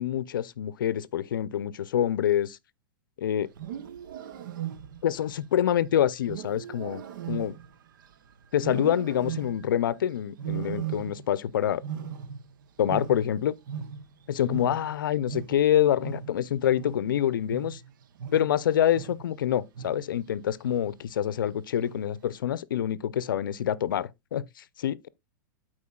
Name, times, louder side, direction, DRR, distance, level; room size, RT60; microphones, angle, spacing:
voice 1, 0.0-2.6 3.2-3.5 5.0-7.0 7.3-7.6 8.5-11.8 12.8-13.5 14.3-17.8 18.3-24.4 24.8-25.1, left 10 dB, 90° left, 0.5 m, -26 dB
Wild animals, 3.5-5.2 6.3-8.1 8.6-9.8 10.4-11.4 11.7-14.2 14.5-19.4 19.7-20.2 20.6-21.1 21.8-22.2, right 9 dB, 75° right, 0.8 m, -38 dB
12.5 x 4.4 x 2.3 m
hypercardioid pair, 130°, 11 cm